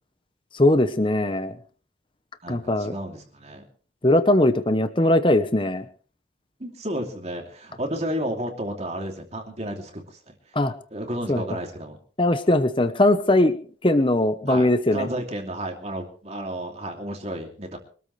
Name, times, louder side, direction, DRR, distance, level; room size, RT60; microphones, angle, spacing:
voice 1, 0.5-1.5 2.5-2.9 4.0-5.8 10.5-10.7 11.3-11.4 12.2-13.6 13.8-15.1, left 1 dB, 25° left, 10 dB, 0.9 m, -20 dB
voice 2, 2.4-3.6 6.6-10.4 10.9-12.0 14.5-17.8, right 1 dB, 35° right, 2 dB, 2.8 m, -32 dB
25.0 x 13.5 x 3.3 m, 0.40 s
head